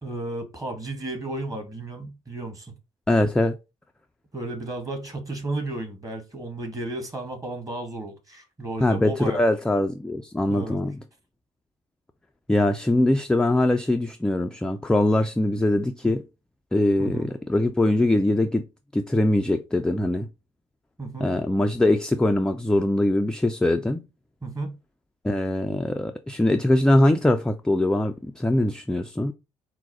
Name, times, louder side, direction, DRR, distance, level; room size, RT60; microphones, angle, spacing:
voice 1, 0.0-2.7 4.3-9.4 10.5-10.8 16.0-16.1 17.0-17.3 21.0-21.3 24.4-24.7, right 2 dB, 20° right, 1.4 m, -33 dB
voice 2, 3.1-3.6 8.8-11.0 12.5-16.2 16.7-18.6 18.9-20.3 21.2-24.0 25.2-29.3, left 1 dB, 5° left, 0.4 m, -22 dB
4.5 x 2.1 x 4.1 m
figure-of-eight pair, 50°, 15 cm